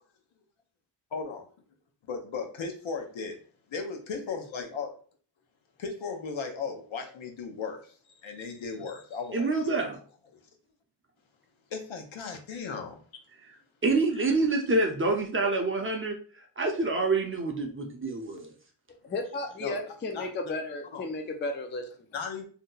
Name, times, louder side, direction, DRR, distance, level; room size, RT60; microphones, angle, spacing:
voice 1, 1.1-1.5 2.1-3.4 3.7-5.0 5.8-7.9 8.2-9.8 11.7-13.0 19.6-19.8 20.1-20.3 20.9-21.0 22.1-22.5, left 5 dB, 75° left, 4 dB, 0.8 m, -36 dB
voice 2, 9.3-10.0 13.8-16.2 16.6-18.5, right 3 dB, 30° right, 1 dB, 0.5 m, -27 dB
voice 3, 19.0-22.0, left 2 dB, 25° left, 4 dB, 0.4 m, -34 dB
2.7 x 2.1 x 3.8 m, 0.41 s
wide cardioid pair, 125°, 46 cm